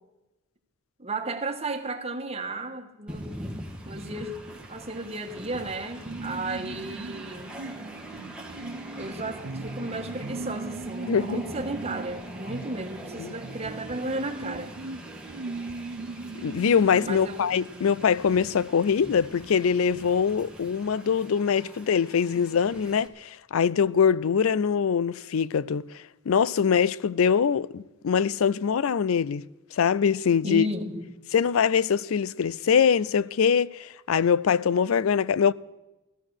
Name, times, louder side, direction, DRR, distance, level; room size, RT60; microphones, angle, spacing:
voice 1, 1.0-3.3 3.8-7.6 9.0-14.8 17.0-17.5 30.4-31.1, right 2 dB, 30° right, 1.5 m, -34 dB
Train, 3.1-23.1, equal, 5° right, 1.6 m, -43 dB
sound 1, 6.0-17.2, right 3 dB, 80° right, 0.5 m, -39 dB
voice 2, 11.1-11.4 13.2-13.3 16.4-25.8 26.3-29.4 29.7-30.7 31.3-35.5, left 7 dB, 90° left, 0.4 m, -23 dB
15.5 x 13.5 x 6.3 m
head